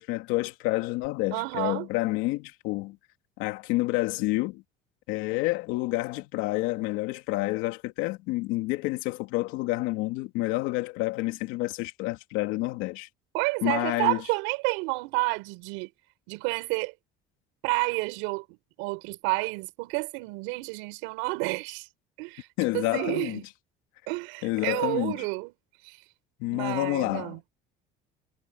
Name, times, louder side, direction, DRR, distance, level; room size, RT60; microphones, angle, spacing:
voice 1, 0.0-3.0 3.4-4.6 5.1-13.1 13.6-14.2 22.6-23.4 24.4-25.2 26.4-27.4, left 20 dB, 80° left, 2.9 m, -29 dB
voice 2, 1.3-1.9 13.3-15.9 16.3-16.9 17.6-21.9 22.2-22.5 22.7-23.4 24.1-25.5 25.8-26.0 26.5-27.5, right 28 dB, 85° right, 6.3 m, -30 dB
supercardioid pair, 105°, 21 cm